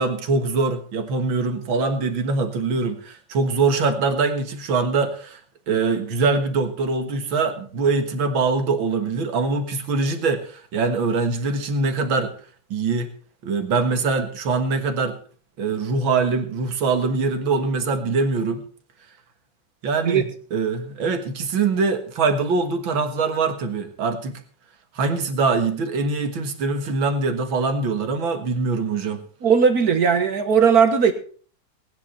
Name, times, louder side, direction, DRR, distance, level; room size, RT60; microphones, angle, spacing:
voice 1, 0.0-5.4 5.7-12.3 12.7-13.1 13.4-15.2 15.6-18.6 19.8-20.2 20.5-24.4 25.0-29.2, right 4 dB, 85° right, 7 dB, 2.4 m, -23 dB
voice 2, 29.4-31.1, right 6 dB, 55° right, 9 dB, 1.6 m, -17 dB
19.0 x 10.0 x 4.3 m, 0.43 s
omnidirectional pair, 2.1 m